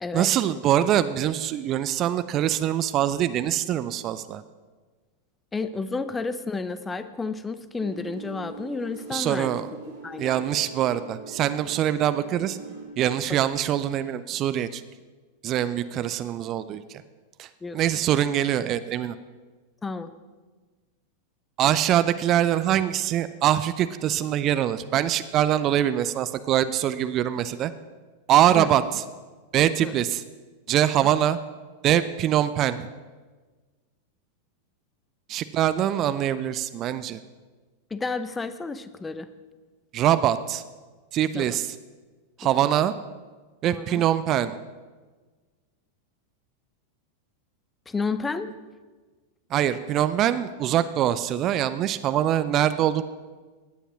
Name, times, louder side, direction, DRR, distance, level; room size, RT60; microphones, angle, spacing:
voice 1, 0.1-4.4 9.1-9.7 10.2-12.6 13.0-14.8 15.4-17.0 17.4-19.2 21.6-27.7 28.3-29.0 29.5-30.2 30.7-31.4 31.8-32.8 35.3-37.2 39.9-40.6 41.1-41.8 42.4-42.9 43.6-44.6 49.5-53.0, right 11 dB, 35° right, 13 dB, 0.6 m, -23 dB
voice 2, 5.5-9.6 10.0-10.4 17.6-17.8 19.8-20.1 28.6-28.7 29.8-29.9 37.9-39.3 41.3-41.5 43.6-44.0 47.9-48.5, left 4 dB, 15° left, 12 dB, 0.8 m, -31 dB
sound 1, 7.8-12.9, right 4 dB, 55° right, 4.4 m, -42 dB
16.5 x 10.0 x 6.0 m, 1.4 s
figure-of-eight pair, 90°, 0 cm